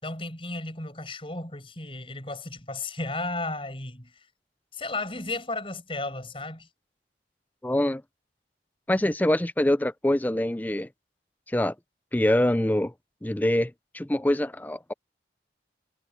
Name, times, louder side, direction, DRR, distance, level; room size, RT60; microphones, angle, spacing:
voice 1, 0.0-4.2 4.7-6.7, left 2 dB, 30° left, 6.7 m, -34 dB
voice 2, 7.6-8.0 8.9-10.9 11.5-11.7 12.1-12.9 13.2-14.9, left 1 dB, 10° left, 0.5 m, -24 dB
head